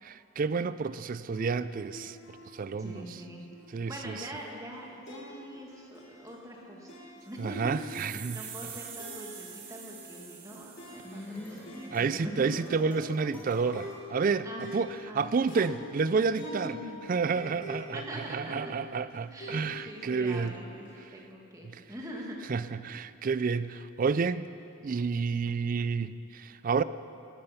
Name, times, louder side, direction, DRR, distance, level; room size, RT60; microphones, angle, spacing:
voice 1, 0.0-3.2 3.7-4.3 7.4-8.7 11.9-16.7 17.1-20.6 21.0-21.1 21.6-21.8 22.5-24.5 24.8-26.8, right 5 dB, 40° right, 15 dB, 0.3 m, -30 dB
sound 1, 1.3-21.0, left 1 dB, 55° left, 4.2 m, -48 dB
voice 2, 2.7-3.4 3.9-6.9 7.2-12.5 14.4-14.8 15.1-15.3 15.6-15.9 16.3-17.0 17.9-18.6 19.3-20.8 21.1-22.4, equal, 15° right, -1 dB, 1.8 m, -43 dB
sound 2, 7.4-11.6, right 8 dB, 85° right, 2.3 m, -46 dB
sound 3, 10.7-15.0, left 1 dB, 10° left, 2.4 m, -46 dB
18.0 x 12.0 x 5.7 m, 2.7 s
head